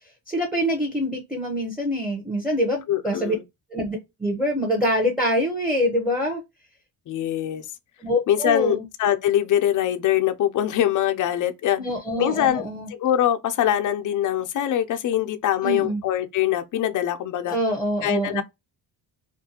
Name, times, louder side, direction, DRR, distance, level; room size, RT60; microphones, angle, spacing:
voice 1, 0.3-3.3 3.7-6.4 8.0-8.8 11.8-12.9 15.6-16.0 17.5-18.4, equal, ahead, 0.8 m, -25 dB
voice 2, 2.9-3.4 7.1-7.7 8.3-11.8 12.2-17.6 18.0-18.4, left 11 dB, 45° left, 0.5 m, -23 dB
2.4 x 2.2 x 2.7 m
cardioid pair, 90°, 45 cm